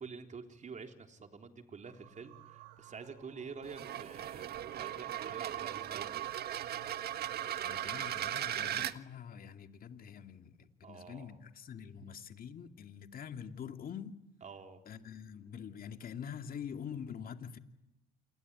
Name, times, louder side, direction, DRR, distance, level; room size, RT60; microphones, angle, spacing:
voice 1, 0.0-6.3 10.8-11.4 12.0-12.1 14.4-14.8, right 5 dB, 40° right, 3.8 m, -48 dB
sound 1, 1.8-8.0, right 13 dB, 85° right, 2.1 m, -58 dB
sound 2, 3.6-8.9, right 11 dB, 55° right, 1.5 m, -38 dB
voice 2, 7.6-14.2 14.9-17.6, left 8 dB, 50° left, 2.4 m, -45 dB
28.0 x 20.5 x 9.7 m
supercardioid pair, 75°, 20 cm